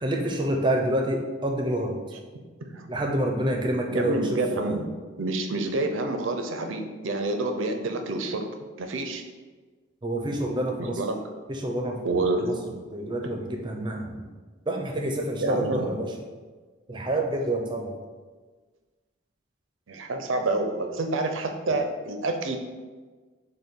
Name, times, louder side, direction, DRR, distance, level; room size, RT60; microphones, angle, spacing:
voice 1, 0.0-2.0 2.9-4.8 10.0-11.0 11.5-12.5 12.9-14.2 14.7-16.1 16.9-17.9, right 1 dB, 20° right, 2 dB, 0.5 m, -28 dB
voice 2, 3.9-4.9 5.2-8.5 8.8-9.2 11.0-11.1 12.0-12.5 15.4-15.9 19.9-22.6, right 2 dB, 70° right, 5 dB, 0.5 m, -28 dB
6.6 x 2.2 x 3.7 m, 1.4 s
head